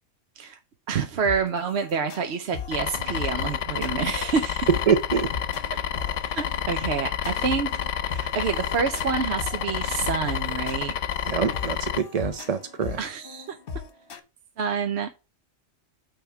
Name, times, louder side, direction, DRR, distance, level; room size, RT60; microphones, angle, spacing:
voice 1, 0.9-4.7 6.3-10.9 13.0-13.6 14.6-15.1, right 6 dB, 60° right, 1.0 m, -28 dB
sound 1, 1.2-14.2, left 6 dB, 50° left, 1.2 m, -39 dB
sound 2, 2.7-12.0, left 9 dB, 75° left, 1.0 m, -29 dB
voice 2, 4.9-5.3 11.3-13.0, right 6 dB, 45° right, 0.5 m, -25 dB
8.9 x 3.5 x 5.8 m
omnidirectional pair, 1.3 m